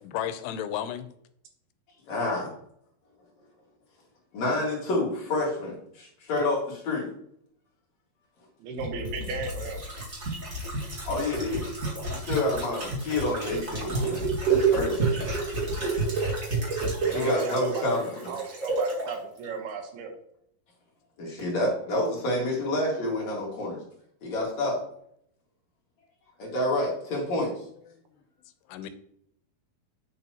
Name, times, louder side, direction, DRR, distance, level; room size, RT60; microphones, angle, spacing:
voice 1, 0.0-1.1 27.9-28.0 28.7-28.9, left 10 dB, 90° left, 11 dB, 2.8 m, -33 dB
voice 2, 2.1-2.5 4.3-7.1 11.0-11.7 12.0-14.2 14.5-15.3 17.1-18.1 21.2-23.8 24.2-24.8 26.4-27.5, left 1 dB, 50° left, -3 dB, 2.8 m, -28 dB
voice 3, 8.6-9.8 15.1-15.2 17.0-17.9 18.3-20.1 21.3-21.4, right 5 dB, 75° right, 4 dB, 3.0 m, -35 dB
sound 1, 8.8-19.1 19.4-19.5, right 4 dB, 40° right, 1.2 m, -29 dB
8.7 x 6.8 x 2.9 m, 0.72 s
omnidirectional pair, 4.7 m